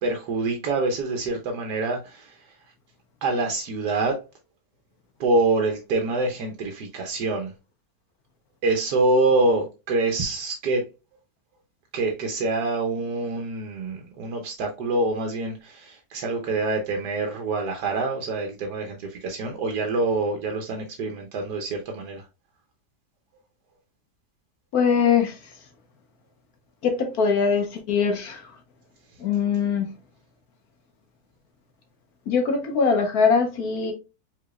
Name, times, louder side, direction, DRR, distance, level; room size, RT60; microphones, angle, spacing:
voice 1, 0.0-2.3 3.2-4.2 5.2-7.5 8.6-10.8 11.9-22.2, right 2 dB, 85° right, 1.4 m, -25 dB
voice 2, 24.7-25.4 26.8-28.5 29.2-29.9 32.3-33.9, left 5 dB, 70° left, 1.3 m, -22 dB
4.9 x 3.9 x 2.4 m
omnidirectional pair, 1.7 m